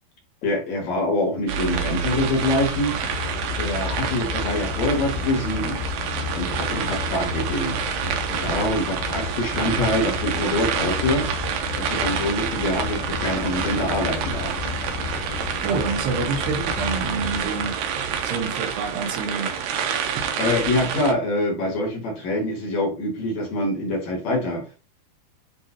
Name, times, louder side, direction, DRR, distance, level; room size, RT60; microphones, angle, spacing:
voice 1, 0.4-2.9 3.6-5.8 6.3-7.8 8.3-14.6 20.4-24.8, left 1 dB, 50° left, 2.8 m, -25 dB
sound 1, 1.5-21.1, right 7 dB, 70° right, 2.2 m, -28 dB
sound 2, 1.7-17.5, left 6 dB, 75° left, 2.2 m, -33 dB
voice 2, 15.6-17.8 18.2-19.6, right 4 dB, 90° right, 3.5 m, -27 dB
10.5 x 3.9 x 2.9 m
omnidirectional pair, 4.7 m